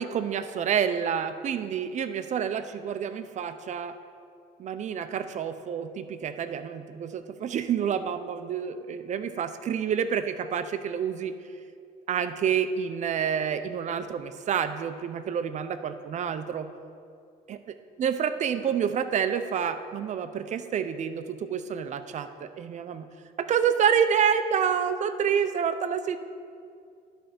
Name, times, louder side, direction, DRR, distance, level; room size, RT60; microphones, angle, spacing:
voice 1, 0.0-3.9 4.6-11.3 12.1-16.7 17.5-17.6 18.0-23.1 23.4-26.2, right 8 dB, 45° right, 10 dB, 0.6 m, -28 dB
11.5 x 4.4 x 5.2 m, 2.3 s
cardioid pair, 110°, 17 cm